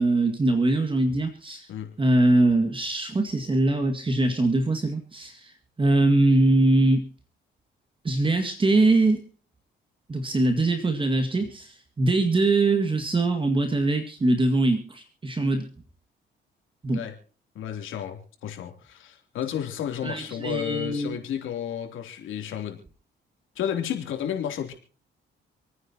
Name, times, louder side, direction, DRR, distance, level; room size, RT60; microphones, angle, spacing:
voice 1, 0.0-1.7 2.0-7.1 8.0-9.2 10.1-15.7 16.8-17.0 20.0-21.1, right 2 dB, 25° right, 4 dB, 2.0 m, -22 dB
voice 2, 17.5-22.8 23.5-24.7, left 9 dB, 80° left, 4 dB, 3.1 m, -32 dB
28.0 x 9.6 x 2.9 m, 0.42 s
cardioid pair, 90°, 20 cm